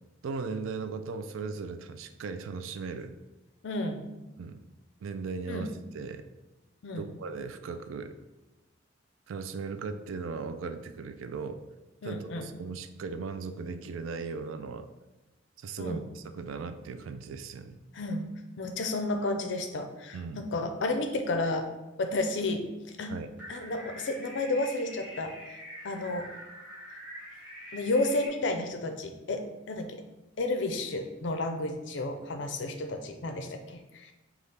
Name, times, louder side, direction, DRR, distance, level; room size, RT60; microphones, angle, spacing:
voice 1, 0.2-3.2 4.4-4.6 5.0-6.2 6.9-8.1 9.3-11.6 12.0-14.9 15.6-17.8 20.1-20.5 23.1-23.3, right 4 dB, 85° right, 9 dB, 0.4 m, -37 dB
voice 2, 3.6-4.0 5.5-5.7 6.8-7.1 12.0-12.5 15.8-16.0 17.9-18.3 18.6-21.7 22.0-22.6 23.0-23.1 23.5-25.3 25.8-26.3 27.7-30.0 30.4-34.1, left 2 dB, 65° left, 5 dB, 0.5 m, -31 dB
sound 1, 23.4-28.3, equal, 10° right, 1.0 m, -45 dB
5.3 x 2.4 x 3.3 m, 1.1 s
head